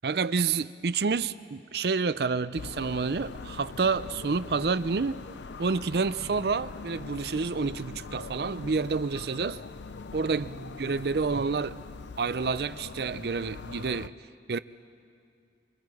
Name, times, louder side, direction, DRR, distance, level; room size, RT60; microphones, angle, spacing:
voice 1, 0.0-5.2 5.6-9.6 10.1-11.8 12.2-14.1 14.5-14.6, right 4 dB, 60° right, 0.5 m, -29 dB
sound 1, 2.5-14.1, left 4 dB, 80° left, 0.5 m, -42 dB
28.0 x 25.5 x 4.9 m
head